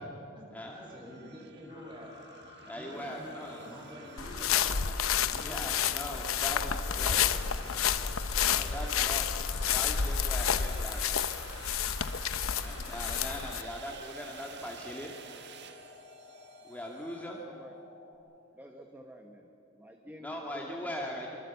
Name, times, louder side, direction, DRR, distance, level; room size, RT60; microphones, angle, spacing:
sound 1, 0.6-17.3, right 7 dB, 55° right, 1.5 m, -51 dB
voice 1, 0.7-2.1 2.7-5.8 6.6-7.4 7.9-8.1 20.8-21.1, equal, 25° right, -1 dB, 6.8 m, -47 dB
sound 2, 1.7-18.1, left 3 dB, 45° left, 3.7 m, -55 dB
voice 2, 2.7-3.7 5.4-7.2 8.5-9.3 9.6-11.2 12.5-15.1 16.6-17.4 20.2-21.4, equal, 10° left, -1 dB, 1.9 m, -40 dB
sound 3, 4.2-13.6, left 8 dB, 85° left, 0.9 m, -30 dB
voice 3, 17.4-17.7 18.5-19.5 19.8-21.2, equal, 10° right, 3 dB, 1.4 m, -49 dB
25.0 x 25.0 x 7.1 m, 2.8 s
head